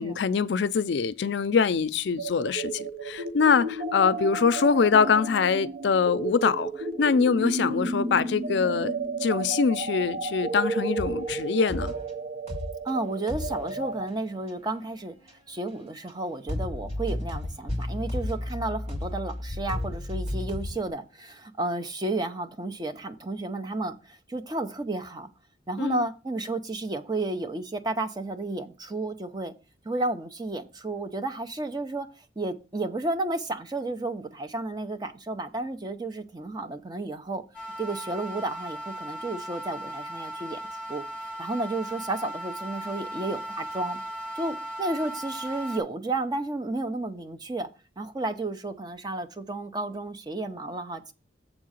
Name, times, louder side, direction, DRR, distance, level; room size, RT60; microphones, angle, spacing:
voice 1, 0.0-6.7 7.0-8.9 9.2-11.9 25.8-26.0, left 5 dB, 70° left, 0.4 m, -24 dB
sound 1, 2.2-14.0, right 3 dB, 60° right, 0.8 m, -33 dB
sound 2, 11.0-12.2 12.5-12.9 13.2-15.7 16.1-16.2 16.5-20.9, left 1 dB, 40° right, 3.0 m, -34 dB
voice 2, 12.8-15.1 15.5-25.3 25.7-29.5 29.8-32.1 32.4-37.4 37.8-41.1 41.4-44.0 44.4-47.7 48.0-51.1, right 2 dB, 25° right, 0.6 m, -32 dB
sound 3, 37.5-45.8, right 1 dB, 5° right, 1.8 m, -37 dB
7.3 x 3.8 x 6.3 m
head